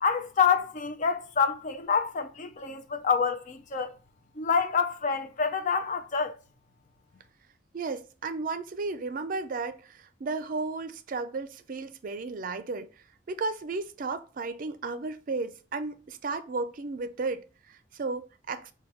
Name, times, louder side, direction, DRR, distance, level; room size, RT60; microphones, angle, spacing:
voice 1, 0.0-3.9 4.4-6.3, left 6 dB, 45° left, 0.5 m, -27 dB
voice 2, 7.7-12.9 13.3-18.7, right 3 dB, 50° right, 0.4 m, -34 dB
4.9 x 2.3 x 3.0 m
head